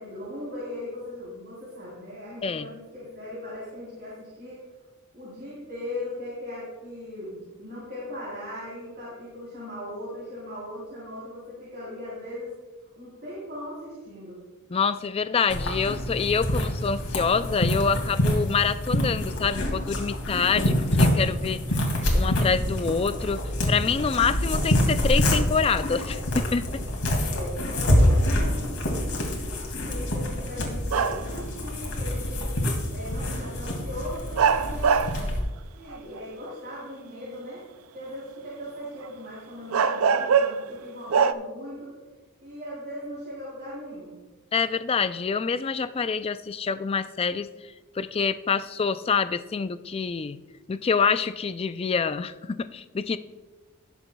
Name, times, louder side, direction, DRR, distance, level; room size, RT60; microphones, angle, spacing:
voice 1, 0.0-4.6 5.1-12.5 13.0-14.4 27.2-29.1 29.8-32.5 32.9-34.9 35.7-37.6 37.9-41.9 42.4-44.1, left 1 dB, 50° right, -7 dB, 3.4 m, -38 dB
voice 2, 14.7-21.6 22.1-23.4 23.7-26.8 44.5-47.5 48.0-50.4 50.7-53.2, left 5 dB, 25° left, 13 dB, 0.3 m, -26 dB
sound 1, 15.5-35.4, equal, 75° left, 2.3 m, -26 dB
sound 2, 30.9-31.4 33.2-33.3 34.4-35.3 35.9-36.5 39.1-39.2 39.7-40.7 41.1-41.3, right 6 dB, 70° right, 0.4 m, -22 dB
17.5 x 7.0 x 2.3 m, 1.2 s
head